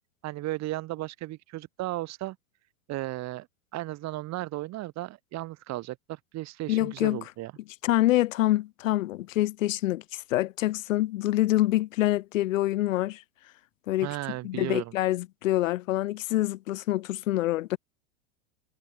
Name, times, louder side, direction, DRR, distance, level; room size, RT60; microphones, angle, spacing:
voice 1, 0.2-2.4 2.9-3.5 3.7-7.5 14.0-14.9, right 17 dB, 40° right, 4.4 m, -35 dB
voice 2, 6.7-7.2 7.8-13.2 13.9-14.1 14.4-17.8, left 16 dB, 75° left, 0.9 m, -26 dB
hypercardioid pair, 110°, 40 cm